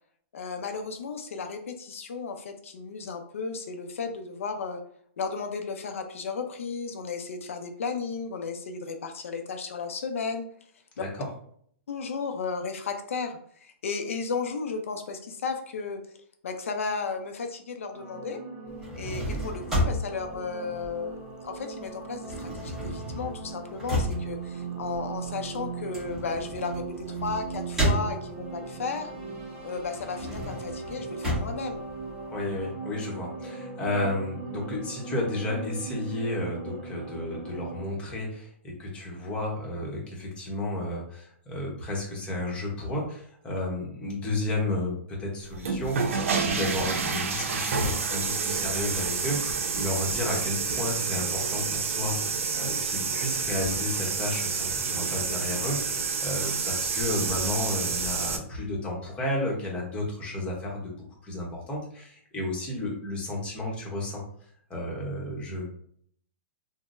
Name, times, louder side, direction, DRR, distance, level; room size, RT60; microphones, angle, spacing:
voice 1, 0.3-4.8 5.2-10.4 11.9-16.0 16.4-18.4 19.0-21.2 21.4-29.1 29.6-31.8, left 5 dB, 85° left, 5 dB, 0.5 m, -34 dB
sound 1, 17.9-37.8, right 4 dB, 45° right, 1.4 m, -39 dB
sound 2, 18.7-21.5 21.8-28.6 29.1-32.6, equal, 5° right, 1.1 m, -32 dB
voice 2, 32.3-60.9 61.2-64.2 64.7-65.7, left 1 dB, 15° left, -3 dB, 0.9 m, -32 dB
sound 3, 45.5-58.4, right 5 dB, 80° right, 0.5 m, -29 dB
3.7 x 2.0 x 2.5 m, 0.63 s
hypercardioid pair, 145°, 7 cm